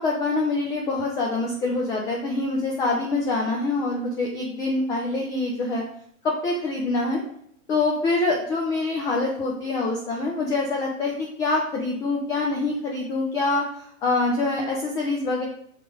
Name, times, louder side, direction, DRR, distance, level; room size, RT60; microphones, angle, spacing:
voice 1, 0.0-5.8 6.2-7.2 7.7-15.4, left 3 dB, 10° left, -1 dB, 0.4 m, -25 dB
6.0 x 4.8 x 4.7 m, 0.68 s
figure-of-eight pair, 105°, 42 cm